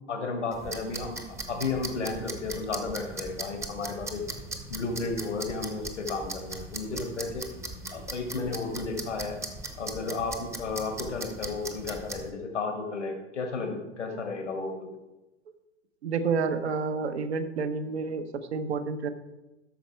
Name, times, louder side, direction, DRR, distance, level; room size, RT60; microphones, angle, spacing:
voice 1, 0.1-1.2 1.5-4.2 4.7-7.5 7.9-9.4 9.8-14.9, left 4 dB, 75° left, 3 dB, 1.7 m, -33 dB
sound 1, 0.5-12.3, right 2 dB, 10° right, 0.8 m, -39 dB
voice 2, 16.0-19.1, right 5 dB, 65° right, 9 dB, 1.0 m, -29 dB
12.0 x 6.3 x 4.5 m, 1.1 s
figure-of-eight pair, 100°, 36 cm